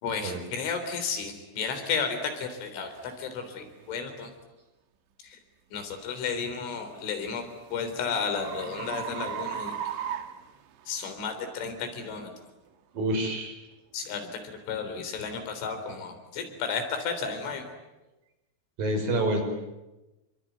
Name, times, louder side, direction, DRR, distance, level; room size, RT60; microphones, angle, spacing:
voice 1, 0.0-4.3 5.2-5.4 5.7-7.4 7.7-9.8 10.9-12.3 13.9-17.7, left 5 dB, 90° left, 7 dB, 6.2 m, -33 dB
sound 1, 2.3-2.4 3.0-3.2 3.8-4.0 6.7-11.1, right 8 dB, 85° right, 4.0 m, -37 dB
voice 2, 12.9-13.6 18.8-19.4, right 1 dB, 50° right, 4 dB, 6.8 m, -27 dB
27.5 x 23.0 x 9.6 m, 1.0 s
omnidirectional pair, 5.3 m